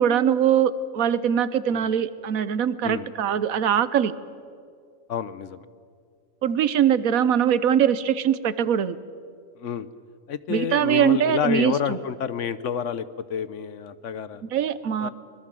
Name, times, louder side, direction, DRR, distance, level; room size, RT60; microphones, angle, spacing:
voice 1, 0.0-4.1 6.4-9.0 10.5-12.0 14.4-15.1, right 9 dB, 85° right, 15 dB, 1.3 m, -22 dB
voice 2, 5.1-5.6 9.6-9.9 10.3-14.4 15.0-15.1, left 8 dB, 65° left, 15 dB, 1.1 m, -29 dB
25.0 x 20.5 x 7.7 m, 2.2 s
omnidirectional pair, 1.4 m